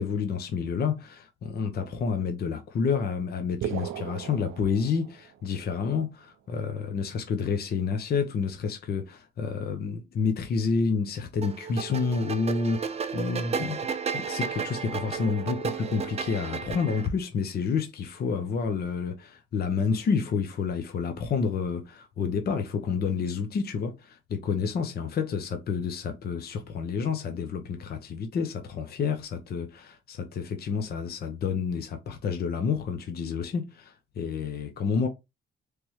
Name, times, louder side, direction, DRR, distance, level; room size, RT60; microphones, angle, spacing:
voice 1, 0.0-13.9 14.1-35.1, left 5 dB, 50° left, 0.8 m, -29 dB
sound 1, 3.6-5.5, right 10 dB, 80° right, 0.4 m, -36 dB
sound 2, 11.4-17.1, right 6 dB, 30° right, 0.5 m, -33 dB
3.4 x 3.1 x 3.0 m
cardioid pair, 90°, 20 cm